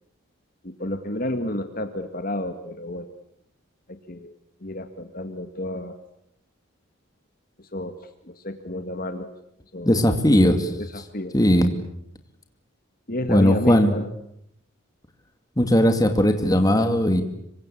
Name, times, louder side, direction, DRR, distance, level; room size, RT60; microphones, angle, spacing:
voice 1, 0.6-3.1 3.9-4.3 4.6-6.0 7.6-8.0 8.2-9.3 9.7-10.0 10.7-11.3 13.1-14.1, left 1 dB, 45° left, 8 dB, 2.0 m, -31 dB
voice 2, 9.8-10.7 11.3-11.7 13.3-13.9 15.6-17.2, equal, 15° left, 6 dB, 2.5 m, -18 dB
26.0 x 24.5 x 8.6 m, 0.75 s
head